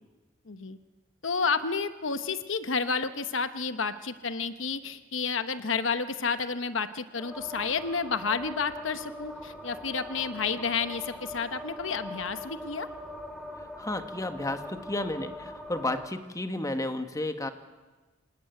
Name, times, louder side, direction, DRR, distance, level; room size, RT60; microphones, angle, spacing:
voice 1, 0.5-0.8 1.2-12.9, left 5 dB, 70° left, 11 dB, 1.0 m, -30 dB
sound 1, 7.1-16.1, left 1 dB, ahead, 2.2 m, -42 dB
voice 2, 13.8-17.5, left 1 dB, 15° left, 8 dB, 1.3 m, -32 dB
26.5 x 18.5 x 9.3 m, 1.3 s
head